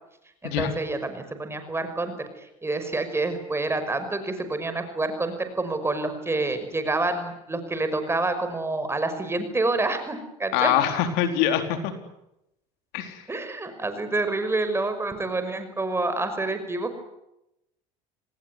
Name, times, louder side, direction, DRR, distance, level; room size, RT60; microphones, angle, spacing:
voice 1, 0.4-10.7 13.3-16.9, right 2 dB, 15° right, 9 dB, 5.6 m, -28 dB
voice 2, 10.5-11.9 12.9-13.3, left 10 dB, 70° left, 7 dB, 4.0 m, -24 dB
27.5 x 19.5 x 9.4 m, 0.85 s
supercardioid pair, 100°, 17 cm